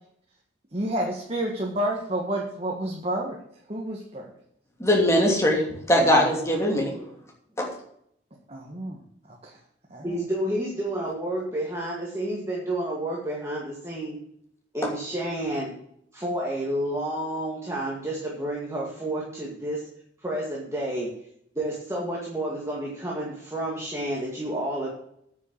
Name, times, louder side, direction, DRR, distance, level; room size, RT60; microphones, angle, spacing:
voice 1, 0.7-3.4 3.7-4.3 8.5-9.0 9.3-9.6 9.9-10.2, right 1 dB, 35° right, -1 dB, 1.5 m, -30 dB
voice 2, 4.8-6.9 7.6-7.7, equal, 15° left, -1 dB, 2.7 m, -21 dB
voice 3, 10.0-14.2 14.7-15.7 16.1-19.9 20.2-21.1 21.6-24.9, right 1 dB, 15° right, -3 dB, 2.0 m, -30 dB
9.5 x 6.5 x 7.3 m, 0.70 s
head